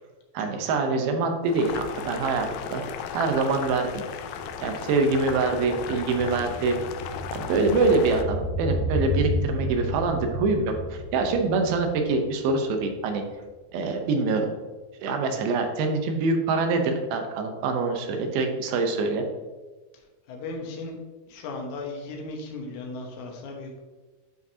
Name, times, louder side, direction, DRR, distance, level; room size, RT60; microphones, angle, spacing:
voice 1, 0.3-2.8 3.1-4.0 4.6-6.8 7.3-13.2 13.7-14.5 15.0-19.2, right 3 dB, 75° right, 4 dB, 2.6 m, -25 dB
Boiling, 1.4-8.2, left 7 dB, 80° left, 2.4 m, -36 dB
sound 1, 2.5-2.6 2.8-13.2 13.4-13.5, left 1 dB, 30° left, 1.7 m, -33 dB
voice 2, 20.3-21.0 21.3-23.8, left 3 dB, 60° left, 1 dB, 2.1 m, -36 dB
12.0 x 4.9 x 2.8 m, 1.3 s
omnidirectional pair, 4.6 m